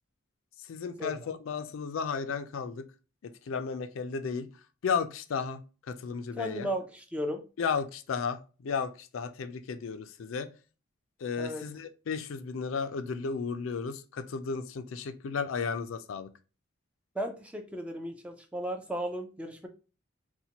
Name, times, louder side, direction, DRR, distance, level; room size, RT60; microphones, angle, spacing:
voice 1, 0.7-2.8 3.2-4.5 4.8-5.6 5.9-6.7 7.6-10.5 11.2-16.3, left 5 dB, 80° left, 10 dB, 0.4 m, -34 dB
voice 2, 6.4-7.4 11.4-11.6 17.2-19.7, equal, 5° right, 4 dB, 0.4 m, -35 dB
4.1 x 2.2 x 2.8 m, 0.33 s
head